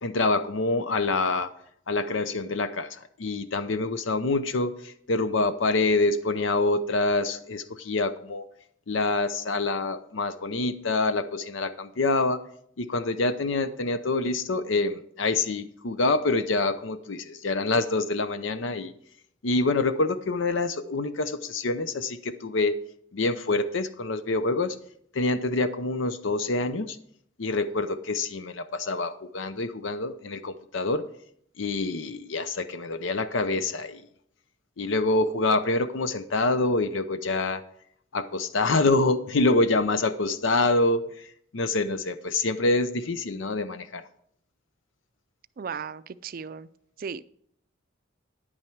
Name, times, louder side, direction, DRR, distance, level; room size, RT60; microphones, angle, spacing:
voice 1, 0.0-1.5 1.9-8.4 8.9-12.4 12.8-18.9 19.4-22.7 23.1-24.8 25.1-27.0 27.4-31.1 31.6-34.0 34.8-37.7 38.1-41.3 41.5-44.0, left 3 dB, 80° left, 11 dB, 0.6 m, -26 dB
voice 2, 45.6-46.7 47.0-47.2, right 6 dB, 50° right, 15 dB, 0.4 m, -36 dB
10.0 x 8.8 x 4.6 m, 0.67 s
head